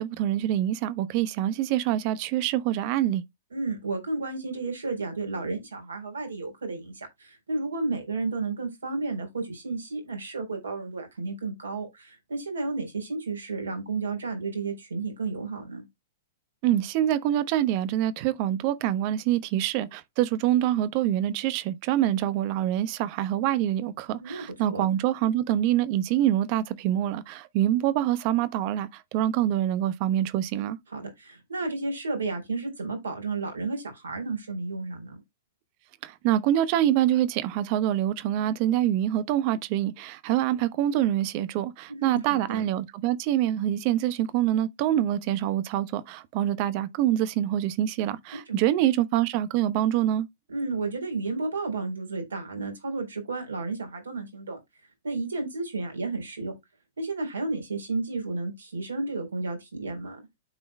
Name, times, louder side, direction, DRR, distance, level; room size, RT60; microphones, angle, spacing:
voice 1, 0.0-3.2 16.6-30.8 36.0-50.3, right 12 dB, 45° right, 0.9 m, -25 dB
voice 2, 3.5-15.8 24.2-24.9 30.9-35.2 41.9-42.6 48.3-48.6 50.5-54.6 55.0-56.5 57.0-60.2, right 3 dB, 80° right, 3.9 m, -32 dB
12.5 x 4.3 x 2.2 m
hypercardioid pair, 110°, 0 cm